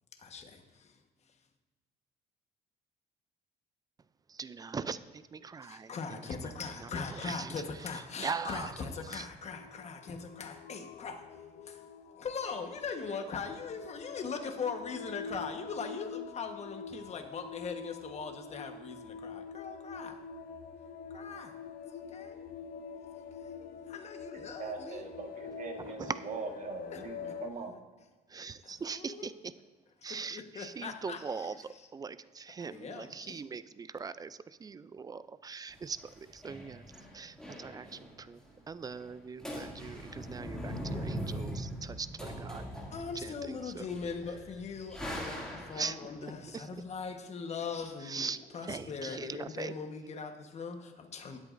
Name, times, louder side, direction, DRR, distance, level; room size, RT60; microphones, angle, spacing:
voice 1, 0.2-1.0 5.6-11.4 11.6-11.8 12.2-20.2 21.1-21.6 22.1-22.4 23.1-23.2 23.5-25.1 26.9-27.0 28.6-29.3 30.0-31.9 32.6-33.4 42.9-51.4, left 5 dB, 40° left, 1.3 m, -40 dB
voice 2, 4.4-5.0 5.3-5.9 6.9-7.5 8.2-8.7 9.1-9.2 26.1-26.2 28.3-29.3 30.0-31.5 31.9-36.0 36.3-36.8 37.1-37.9 38.3-38.4 38.7-42.7 43.2-43.8 45.8-45.9 46.5-46.6 48.1-48.4 48.7-49.7, right 5 dB, 20° right, 0.4 m, -40 dB
sound 1, 9.5-27.5, left 5 dB, 55° left, 0.7 m, -46 dB
voice 3, 24.3-27.8, right 4 dB, 50° right, 1.6 m, -42 dB
sound 2, 35.7-38.2 38.5-38.6 38.8-39.1 39.4-46.0, equal, 5° left, 2.4 m, -41 dB
19.5 x 8.1 x 2.6 m
cardioid pair, 110°, 17 cm